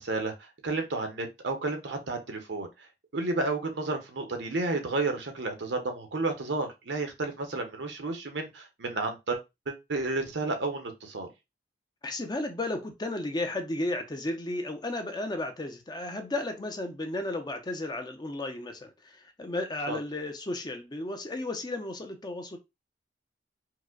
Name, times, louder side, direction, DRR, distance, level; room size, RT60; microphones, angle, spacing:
voice 1, 0.0-2.9 3.1-9.4 9.7-11.3 19.9-20.0, right 3 dB, 70° right, 0.8 m, -31 dB
voice 2, 12.0-22.6, left 2 dB, 25° left, 0.5 m, -34 dB
4.7 x 2.1 x 2.3 m
head